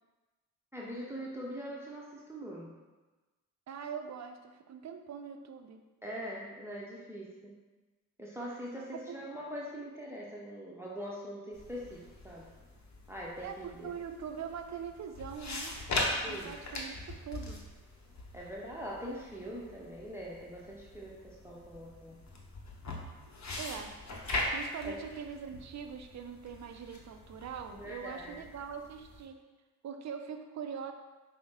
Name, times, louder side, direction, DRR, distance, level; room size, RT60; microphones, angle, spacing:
voice 1, 0.7-2.7 6.0-7.5 8.2-12.5 13.1-13.9 16.2-16.5 18.3-22.2 24.8-25.0 27.7-28.4, equal, 5° right, -4 dB, 0.7 m, -42 dB
voice 2, 3.7-5.9 8.9-9.2 13.4-17.7 23.6-23.9 24.5-29.4 29.8-30.9, right 7 dB, 40° right, 6 dB, 0.5 m, -42 dB
sound 1, 11.5-29.2, left 2 dB, 40° left, 0.9 m, -41 dB
5.3 x 2.1 x 3.5 m, 1.2 s
hypercardioid pair, 40°, 43 cm